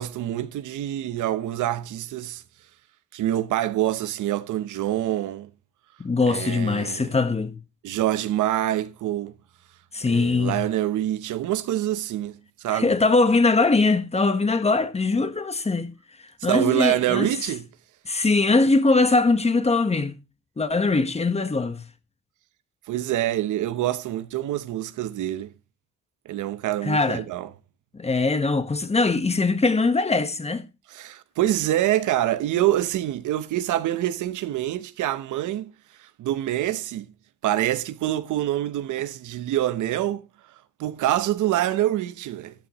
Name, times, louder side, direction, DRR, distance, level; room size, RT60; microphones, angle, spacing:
voice 1, 0.0-2.4 3.1-5.5 6.3-7.1 7.8-9.3 10.1-12.9 16.5-17.7 22.9-25.5 26.3-27.5 30.9-35.7 36.0-37.1 37.4-40.3 40.8-42.5, right 13 dB, 80° right, 0.8 m, -26 dB
voice 2, 6.0-7.6 9.9-10.6 12.7-15.9 16.4-17.3 18.0-20.1 20.6-21.8 26.8-27.2 27.9-30.6, left 3 dB, 20° left, 1.2 m, -21 dB
13.0 x 9.8 x 3.0 m
cardioid pair, 90°, 30 cm